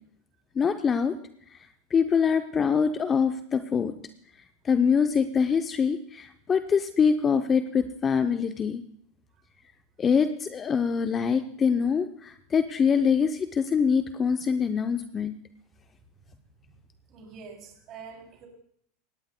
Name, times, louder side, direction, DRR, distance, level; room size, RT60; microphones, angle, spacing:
voice 1, 0.6-1.2 1.5-1.6 1.9-3.9 4.6-8.8 10.0-15.4, left 6 dB, 25° left, 8 dB, 0.6 m, -24 dB
voice 2, 17.1-18.5, right 5 dB, 45° right, 1 dB, 3.0 m, -45 dB
18.0 x 17.5 x 2.2 m, 0.67 s
hypercardioid pair, 100°, 0 cm